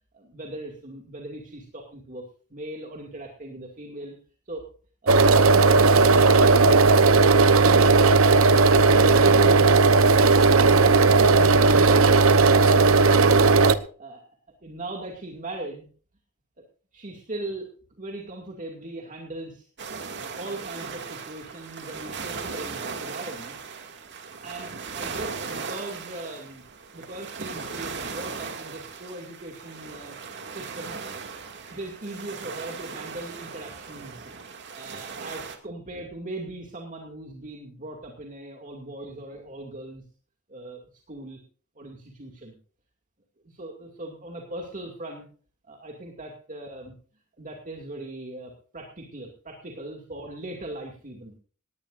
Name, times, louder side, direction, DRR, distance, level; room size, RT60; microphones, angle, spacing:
voice 1, 0.1-2.2 2.5-4.2 4.5-4.7 5.0-6.8 7.2-8.1 8.9-9.8 10.4-13.4 14.0-14.2 14.6-15.9 16.9-17.7 18.0-19.7 20.4-23.6 24.4-26.6 26.9-30.2 30.5-31.0 31.7-34.3 34.7-40.0 40.5-40.8 41.1-41.4 41.8-42.6 43.4-45.2 45.7-46.9 47.4-51.3, right 1 dB, 40° right, 0 dB, 2.5 m, -39 dB
sound 1, 5.1-13.7, right 4 dB, 70° right, 1.0 m, -16 dB
sound 2, 19.8-35.6, right 5 dB, 55° right, 2.4 m, -37 dB
18.5 x 18.0 x 2.6 m, 0.41 s
head